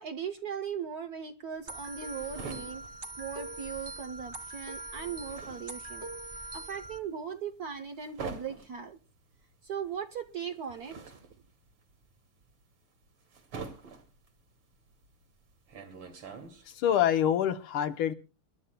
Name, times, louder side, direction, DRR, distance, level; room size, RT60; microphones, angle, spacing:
voice 1, 0.0-2.8 3.2-6.1 6.5-9.0 9.6-11.1, right 7 dB, 60° right, 9 dB, 1.0 m, -38 dB
Leather bag being dropped and picked up, 1.5-4.1 4.3-17.0, right 5 dB, 80° right, 3.2 m, -46 dB
sound 1, 1.7-7.0, right 2 dB, 25° right, 1.3 m, -42 dB
voice 2, 16.7-18.1, left 10 dB, 80° left, 9 dB, 1.8 m, -26 dB
27.5 x 12.0 x 2.2 m, 0.31 s
omnidirectional pair, 2.4 m